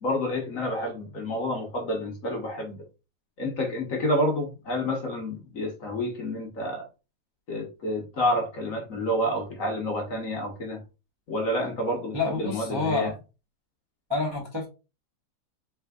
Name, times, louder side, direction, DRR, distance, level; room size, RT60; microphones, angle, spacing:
voice 1, 0.0-2.8 3.4-6.9 7.5-10.8 11.3-13.1, left 1 dB, 50° left, 1.1 m, -29 dB
voice 2, 12.1-13.2 14.1-14.7, left 3 dB, 25° right, 0.5 m, -28 dB
4.2 x 3.8 x 2.3 m
omnidirectional pair, 2.1 m